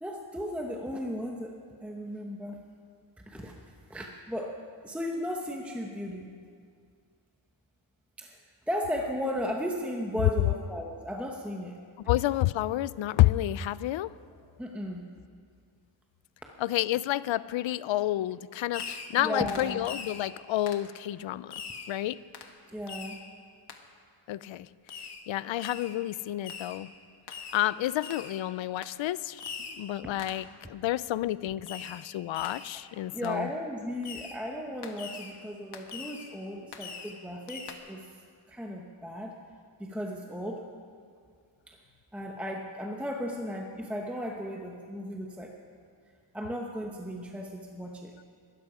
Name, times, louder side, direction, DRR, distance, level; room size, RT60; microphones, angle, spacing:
voice 1, 0.0-2.6 3.2-3.5 3.9-4.6 4.8-6.3 8.2-8.4 8.7-11.8 14.6-15.0 19.2-19.8 22.7-23.2 33.1-38.0 38.5-39.4 39.8-40.7 41.7-41.8 42.1-45.5 46.3-48.1, equal, 5° right, 1 dB, 0.9 m, -35 dB
voice 2, 12.1-14.1 16.6-21.5 21.9-22.2 24.3-24.7 25.3-26.9 27.5-29.4 29.7-33.5, left 14 dB, 70° left, 18 dB, 0.5 m, -29 dB
Fireworks, 18.7-19.2 19.5-20.2 20.7-20.9 21.5-21.9 22.3-22.5 22.9-23.2 23.7-23.8 24.9-25.2 25.6-26.0 26.4-26.8 27.3-27.7 28.0-28.4 28.8-29.0 29.4-29.8 30.2-30.5 31.7-32.1 32.3-32.7 33.2-33.4 34.0-34.4 34.8-35.3 35.7-36.3 36.7-37.2 37.5-37.7, left 6 dB, 55° left, 1.4 m, -42 dB
21.0 x 12.5 x 4.9 m, 2.2 s
wide cardioid pair, 160°, 48 cm